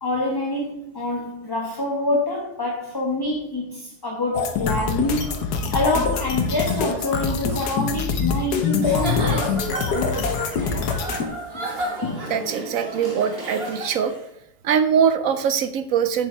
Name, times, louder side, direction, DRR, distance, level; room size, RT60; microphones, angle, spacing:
voice 1, 0.0-5.3 5.7-11.0 12.0-12.3, left 2 dB, 15° left, -2 dB, 1.2 m, -26 dB
sound 1, 4.3-11.3, left 5 dB, 75° left, 1.5 m, -24 dB
Giggle / Chuckle chortle, 8.7-14.2, right 1 dB, 35° right, 1.9 m, -32 dB
voice 2, 12.3-14.1 14.6-16.3, right 7 dB, 65° right, 10 dB, 0.9 m, -22 dB
7.9 x 7.2 x 4.5 m, 0.77 s
omnidirectional pair, 1.7 m